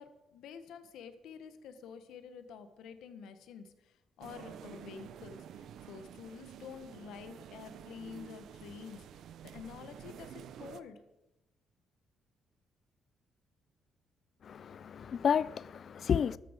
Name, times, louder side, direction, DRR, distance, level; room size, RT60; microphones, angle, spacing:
voice 1, 0.0-11.0, left 6 dB, 85° left, 1.5 m, -49 dB
sound 1, 4.2-10.8, right 9 dB, 75° right, 0.8 m, -50 dB
voice 2, 14.4-16.4, left 7 dB, 55° left, 0.4 m, -31 dB
14.0 x 13.0 x 5.3 m
cardioid pair, 90°, 0 cm